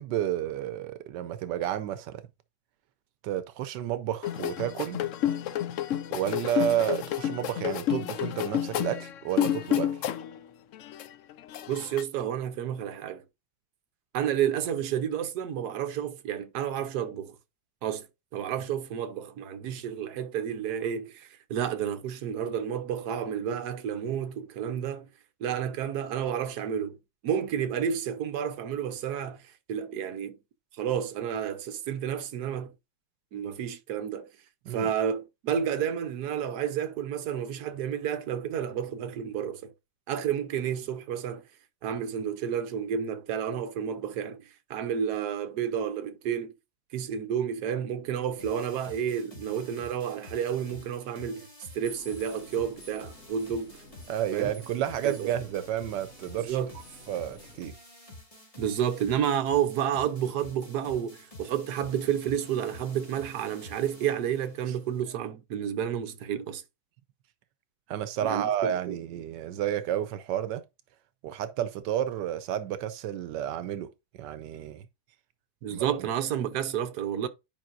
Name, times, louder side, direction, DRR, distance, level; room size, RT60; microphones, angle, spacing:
voice 1, 0.0-2.2 3.2-5.0 6.1-9.9 34.7-34.9 54.1-56.6 57.1-57.7 64.7-64.8 67.9-70.6 71.2-73.9 74.1-74.8 75.7-76.0, right 10 dB, 85° right, 1.3 m, -31 dB
sound 1, 4.2-10.4 10.7-12.0, left 11 dB, 70° left, 0.7 m, -30 dB
voice 2, 11.7-13.2 14.1-17.4 17.8-18.1 18.3-25.1 25.4-27.0 27.2-30.4 30.8-32.7 33.3-34.3 34.7-39.7 40.1-41.4 41.8-46.5 46.9-51.5 51.7-53.7 54.3-54.5 55.0-55.3 56.4-56.7 58.6-66.6 68.2-69.0 75.6-77.3, right 9 dB, 70° right, 1.4 m, -30 dB
sound 2, 48.4-65.0, left 2 dB, 20° left, 2.3 m, -49 dB
sound 3, 51.8-57.6, left 1 dB, 50° left, 2.2 m, -51 dB
10.5 x 5.3 x 2.5 m
omnidirectional pair, 1.8 m